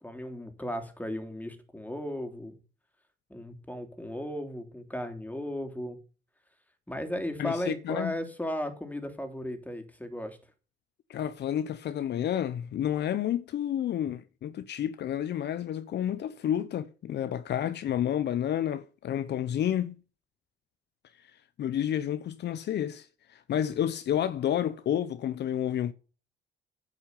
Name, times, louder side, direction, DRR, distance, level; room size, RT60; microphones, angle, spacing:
voice 1, 0.0-2.6 3.3-6.0 6.9-10.4, left 1 dB, 10° left, 3.4 m, -35 dB
voice 2, 7.4-8.1 11.1-19.9 21.6-23.1 23.3-25.9, left 10 dB, 65° left, 0.9 m, -30 dB
10.0 x 6.9 x 8.3 m
supercardioid pair, 65°, 19 cm